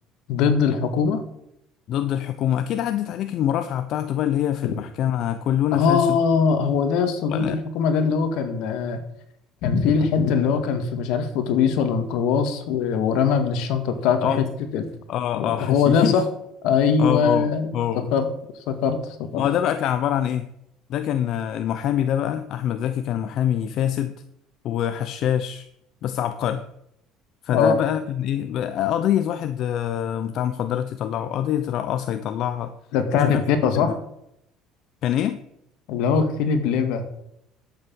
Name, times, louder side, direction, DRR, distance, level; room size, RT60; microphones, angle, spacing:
voice 1, 0.3-1.2 5.7-9.0 9.6-14.3 14.7-14.9 15.4-16.2 16.6-17.7 18.1-18.3 18.7-19.4 27.5-27.8 32.9-34.0 35.9-37.0, left 6 dB, 75° left, 8 dB, 2.1 m, -21 dB
voice 2, 1.9-6.2 7.3-7.6 14.2-14.5 15.1-16.2 17.0-18.1 19.4-20.5 20.9-24.1 24.6-25.7 26.0-26.6 27.4-32.7 33.1-33.4 33.7-33.9 35.0-35.4, left 10 dB, 55° left, 10 dB, 0.8 m, -25 dB
11.5 x 8.4 x 7.1 m, 0.78 s
cardioid pair, 125°, 0 cm